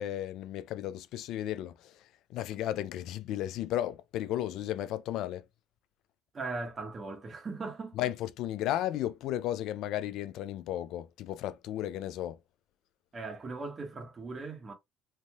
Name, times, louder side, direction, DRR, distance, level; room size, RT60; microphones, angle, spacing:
voice 1, 0.0-5.5 8.0-12.4, left 12 dB, 70° left, 0.3 m, -34 dB
voice 2, 6.3-8.0 13.1-14.7, right 3 dB, 35° right, 1.2 m, -39 dB
3.2 x 2.6 x 2.3 m
supercardioid pair, 80°, 0 cm